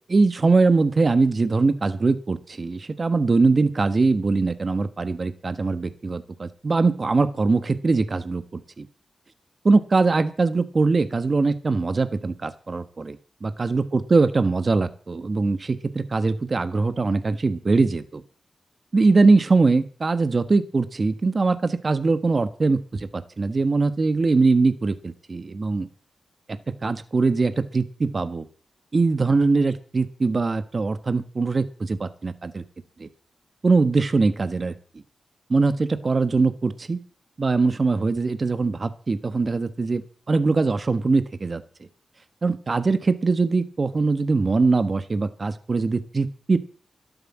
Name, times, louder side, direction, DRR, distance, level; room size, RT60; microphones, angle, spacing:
voice 1, 0.1-8.9 9.6-18.2 18.9-25.9 26.7-28.4 28.9-32.6 33.0-33.1 33.6-34.7 35.5-37.0 37.4-40.0 40.3-41.6 42.4-46.6, right 3 dB, 50° right, 12 dB, 1.4 m, -22 dB
12.5 x 12.5 x 7.4 m, 0.41 s
cardioid pair, 50°, 0 cm